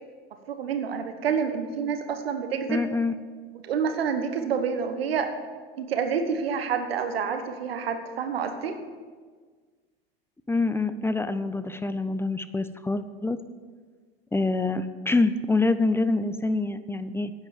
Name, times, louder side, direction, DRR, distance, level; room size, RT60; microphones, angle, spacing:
voice 1, 0.5-2.8 3.5-5.3 5.8-8.8, right 6 dB, 85° right, 7 dB, 1.1 m, -28 dB
voice 2, 2.7-3.1 10.5-13.4 14.3-17.5, left 3 dB, 10° left, 12 dB, 0.6 m, -26 dB
10.0 x 8.9 x 7.1 m, 1.5 s
hypercardioid pair, 85°, 29 cm